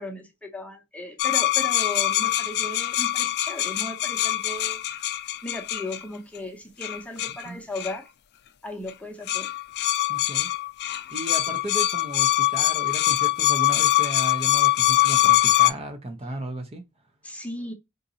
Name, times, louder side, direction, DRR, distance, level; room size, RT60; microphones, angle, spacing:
voice 1, 0.0-4.8 5.4-8.0 8.6-9.5 17.2-17.7, left 1 dB, 5° left, 0.7 m, -36 dB
Creaking Metal Desk, 1.2-6.0 6.8-7.4 7.8-8.0 8.9-9.0 9.3-15.7, left 15 dB, 50° left, 0.3 m, -23 dB
voice 2, 7.3-7.6 10.1-10.5 11.1-16.8, right 1 dB, 30° right, 0.6 m, -35 dB
3.8 x 2.6 x 2.7 m
head